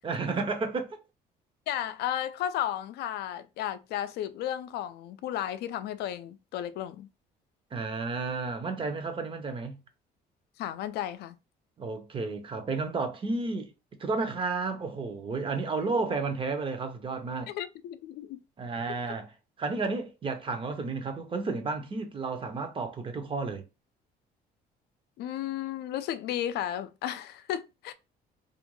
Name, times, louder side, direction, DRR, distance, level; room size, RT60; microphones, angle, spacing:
voice 1, 0.0-1.0 7.7-9.8 11.8-13.7 14.0-17.5 18.6-19.3 19.6-23.7, right 3 dB, 30° right, 0.6 m, -32 dB
voice 2, 1.7-7.1 10.6-11.4 15.8-16.0 17.5-18.4 18.9-19.0 25.2-27.9, left 11 dB, 75° left, 0.4 m, -34 dB
2.5 x 2.2 x 3.0 m
cardioid pair, 110°, 17 cm